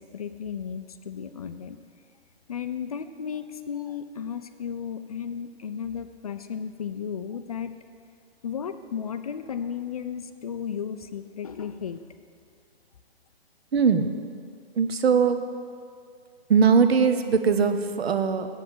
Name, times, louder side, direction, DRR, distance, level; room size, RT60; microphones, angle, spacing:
voice 1, 0.0-1.8 2.5-7.7 8.4-12.0, left 7 dB, 40° left, 10 dB, 0.4 m, -34 dB
voice 2, 13.7-14.1 14.7-15.4 16.5-18.5, right 5 dB, 75° right, 9 dB, 0.9 m, -20 dB
7.9 x 7.3 x 7.7 m, 2.2 s
hypercardioid pair, 150°, 31 cm